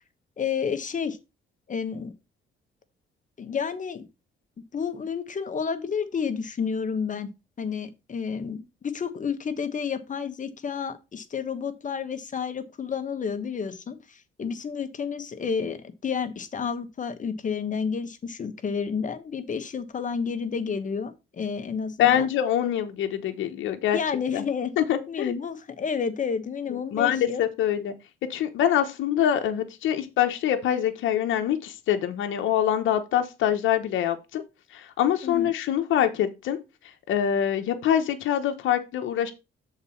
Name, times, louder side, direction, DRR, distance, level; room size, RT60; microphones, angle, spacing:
voice 1, 0.4-1.2 1.7-2.1 3.4-4.0 4.7-7.3 7.6-22.3 23.9-24.7 25.1-27.4 35.2-35.5, left 6 dB, 40° left, 1.2 m, -30 dB
voice 2, 22.0-24.0 24.3-24.4 24.8-25.3 26.9-27.9 28.3-34.4 34.7-36.6 37.1-39.3, left 10 dB, 80° left, 1.0 m, -24 dB
6.6 x 4.1 x 5.7 m
cardioid pair, 90°, 20 cm